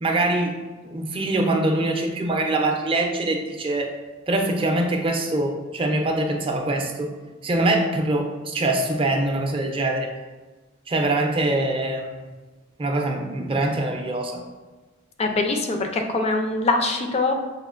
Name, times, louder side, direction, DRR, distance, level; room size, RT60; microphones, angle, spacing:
voice 1, 0.0-0.6 0.8-3.9 4.3-7.1 7.4-10.1 10.9-12.3 12.8-14.4, right 2 dB, 25° right, 2 dB, 0.5 m, -23 dB
voice 2, 15.2-17.3, left 3 dB, 30° left, 4 dB, 0.4 m, -23 dB
6.2 x 2.5 x 2.4 m, 1.2 s
head